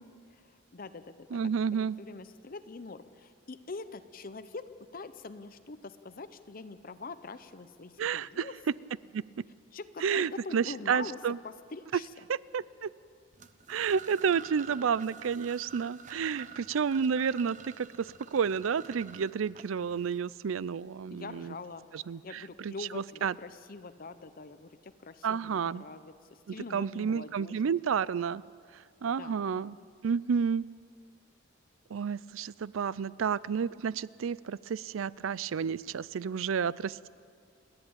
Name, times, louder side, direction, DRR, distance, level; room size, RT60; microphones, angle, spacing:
voice 1, 0.3-1.4 1.7-8.6 9.7-12.1 21.1-21.9 22.2-27.8 29.1-29.8, left 3 dB, 45° left, 12 dB, 0.7 m, -44 dB
voice 2, 1.3-2.0 8.0-8.4 9.1-9.2 10.0-11.4 12.3-12.9 13.7-21.5 21.9-23.3 25.2-25.8 26.5-28.4 29.0-29.7 30.0-30.7 31.9-37.1, right 6 dB, 85° right, 21 dB, 0.4 m, -31 dB
sound 1, 13.3-20.2, right 6 dB, 40° right, 0.8 m, -48 dB
29.5 x 10.5 x 8.7 m, 2.2 s
head